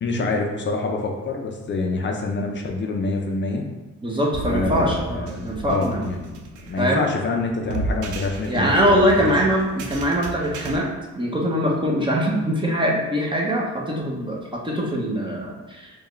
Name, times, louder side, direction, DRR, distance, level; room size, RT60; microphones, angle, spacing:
voice 1, 0.0-3.6 4.5-6.4 6.7-9.1 9.4-9.5, left 3 dB, 40° left, 2 dB, 0.5 m, -26 dB
voice 2, 4.0-6.0 6.8-7.0 8.5-10.9 11.1-15.9, equal, 15° right, -2 dB, 0.8 m, -22 dB
sound 1, 4.3-10.8, right 3 dB, 80° right, 0.6 m, -33 dB
4.6 x 2.3 x 3.1 m, 1.1 s
cardioid pair, 90°, 30 cm